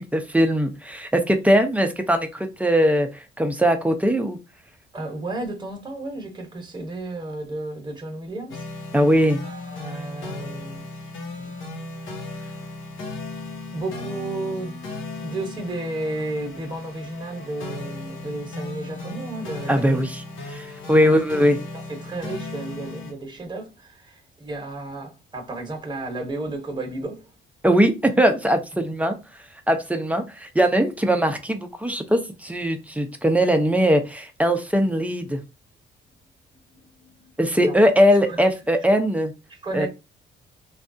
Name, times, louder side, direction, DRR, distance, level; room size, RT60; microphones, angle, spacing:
voice 1, 0.0-3.1 3.4-4.4 8.9-9.4 19.7-21.6 27.6-29.2 29.7-35.4 37.4-39.3 39.7-39.9, equal, 5° right, 0.6 m, -20 dB
voice 2, 4.9-8.6 9.4-10.9 11.4-11.5 13.7-14.8 15.2-20.0 20.9-21.2 21.7-27.3 36.7-37.3 37.6-37.8 38.3-38.4 39.5-39.9, right 2 dB, 20° right, 1.0 m, -33 dB
sound 1, 8.5-23.1, left 2 dB, 80° left, 1.0 m, -36 dB
3.3 x 2.4 x 2.6 m
cardioid pair, 90°, 20 cm